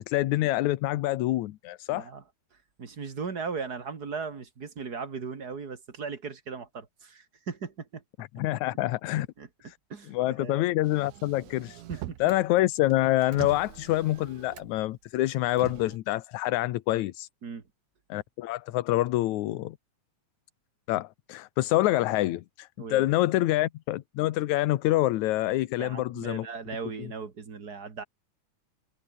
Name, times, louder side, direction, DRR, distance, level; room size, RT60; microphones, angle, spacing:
voice 1, 0.0-2.1 8.2-9.3 9.6-9.8 10.1-11.8 12.2-17.3 18.1-19.8 20.9-26.5, left 16 dB, 75° left, 2.2 m, -26 dB
voice 2, 1.9-2.2 2.8-8.0 9.1-9.5 9.9-10.6 11.8-12.2 17.4-17.6 22.8-23.1 25.8-28.0, right 5 dB, 35° right, 2.3 m, -38 dB
Motor vehicle (road), 10.8-12.4 12.8-14.9 15.5-16.0, right 17 dB, 75° right, 1.9 m, -43 dB
omnidirectional pair, 3.5 m